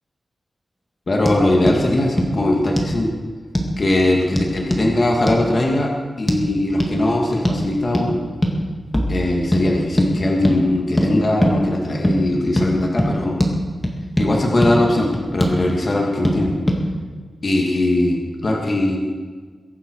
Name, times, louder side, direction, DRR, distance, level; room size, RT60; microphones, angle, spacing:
voice 1, 1.1-3.1 3.8-5.9 6.2-8.2 9.1-13.4 14.2-16.5 17.4-19.0, left 1 dB, 35° left, -1 dB, 2.1 m, -20 dB
sound 1, 1.2-1.4 1.7-1.8 2.2-2.3 2.8-3.0 3.5-3.7 4.4-4.9 5.3-5.4 6.3-6.4 6.8-6.9 7.4-7.6 7.9-8.1 8.4-8.6 8.9-9.1 9.5-9.6 10.0-10.1 10.4-10.6 11.0-11.1 11.4-11.6 12.0-12.2 12.6-12.7 13.0-13.1 13.4-13.5 13.8-14.3 14.6-14.7 15.1-15.6 16.2-16.4 16.7-16.8, equal, 10° left, 2.0 m, -20 dB
22.0 x 11.0 x 4.7 m, 1.5 s
wide cardioid pair, 170°, 0 cm